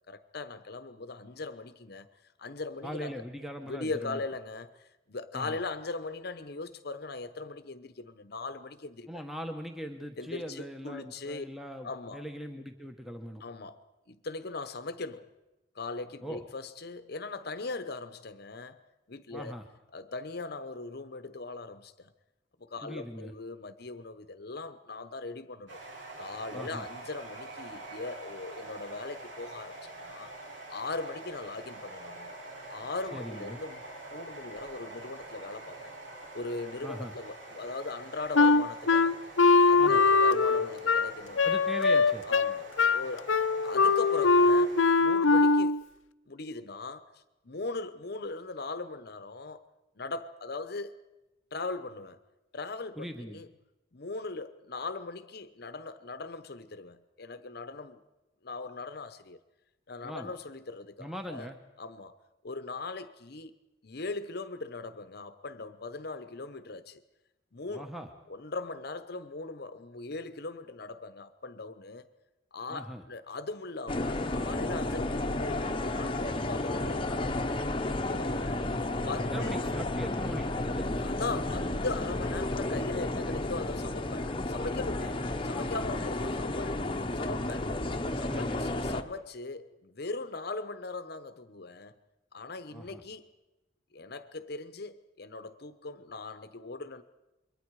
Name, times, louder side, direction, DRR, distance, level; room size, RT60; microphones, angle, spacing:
voice 1, 0.1-2.1 2.4-3.3 3.6-4.7 5.1-9.2 10.2-11.5 11.8-12.2 13.4-15.3 15.7-18.8 19.1-19.5 19.9-22.1 22.6-25.8 26.2-30.3 30.7-32.3 32.7-33.8 34.1-35.9 36.3-39.2 39.7-41.4 42.2-43.3 43.6-45.8 46.3-47.0 47.4-49.6 50.0-50.9 51.5-52.2 52.5-53.5 53.9-58.0 58.4-59.4 59.9-61.5 61.8-62.2 62.4-63.5 63.8-67.0 67.5-67.9 68.3-72.1 72.5-78.6 79.0-79.6 81.0-86.8 87.1-87.7 88.2-92.0 92.3-93.3 93.9-97.0, left 3 dB, 55° left, 0.9 m, -39 dB
voice 2, 2.8-4.2 5.3-5.6 9.1-13.4 16.2-16.4 19.3-19.6 22.8-23.3 26.5-26.9 33.1-33.6 36.8-37.1 39.8-40.0 41.4-42.3 53.0-53.4 60.0-60.3 61.0-61.6 67.7-68.1 72.7-73.0 79.0-81.1 88.1-88.6 92.7-93.0, equal, ahead, 1.1 m, -40 dB
sound 1, 25.7-44.9, right 2 dB, 75° right, 6.5 m, -45 dB
Wind instrument woodwind instrument, 38.3-45.8, left 4 dB, 85° left, 0.7 m, -22 dB
sound 2, 73.9-89.0, left 2 dB, 25° left, 1.0 m, -32 dB
27.5 x 23.0 x 4.8 m
head